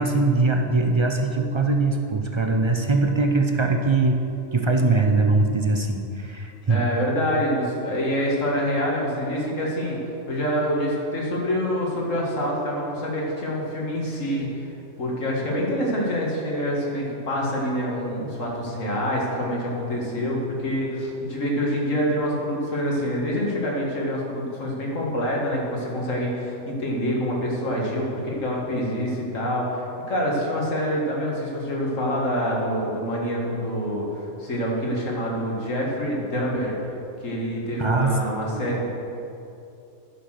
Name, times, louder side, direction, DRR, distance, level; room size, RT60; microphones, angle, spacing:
voice 1, 0.0-4.2 4.5-6.8 18.2-18.3 37.8-38.7, right 3 dB, 40° right, 4 dB, 0.4 m, -22 dB
voice 2, 6.7-10.0 10.3-14.5 15.0-36.8 37.2-38.9, equal, 80° left, -3 dB, 2.2 m, -26 dB
10.5 x 5.9 x 6.4 m, 2.8 s
omnidirectional pair, 1.3 m